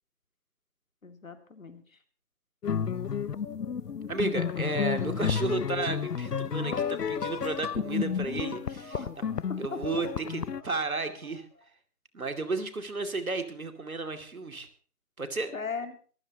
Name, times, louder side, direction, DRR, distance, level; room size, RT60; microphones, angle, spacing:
voice 1, 1.0-2.0 6.6-7.1 8.9-9.1 9.5-9.8 15.5-16.0, left 4 dB, 55° left, 8 dB, 2.4 m, -38 dB
sound 1, 2.6-10.6, left 7 dB, 90° left, 0.8 m, -31 dB
sound 2, 2.9-3.4 3.8-11.7, left 2 dB, 75° left, 4.3 m, -54 dB
voice 2, 4.1-9.0 9.6-11.5 12.1-14.7 15.2-15.5, right 3 dB, 60° right, 7 dB, 2.6 m, -33 dB
23.5 x 14.5 x 2.9 m, 0.41 s
figure-of-eight pair, 175°, 47 cm